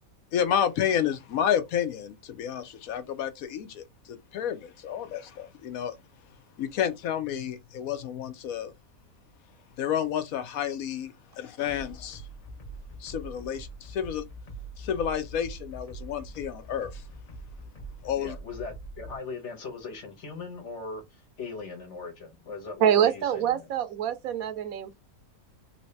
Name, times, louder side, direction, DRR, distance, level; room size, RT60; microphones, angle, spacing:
voice 1, 0.3-5.9 6.6-8.7 9.8-12.2 13.0-14.2 14.8-17.0 18.0-18.4, left 9 dB, 75° left, 1.1 m, -30 dB
sound 1, 11.7-19.2, right 2 dB, 30° left, 0.7 m, -43 dB
voice 2, 18.2-23.7, left 4 dB, 55° left, 1.3 m, -39 dB
voice 3, 22.8-25.0, right 9 dB, 75° right, 1.0 m, -25 dB
3.1 x 2.8 x 3.2 m
omnidirectional pair, 1.5 m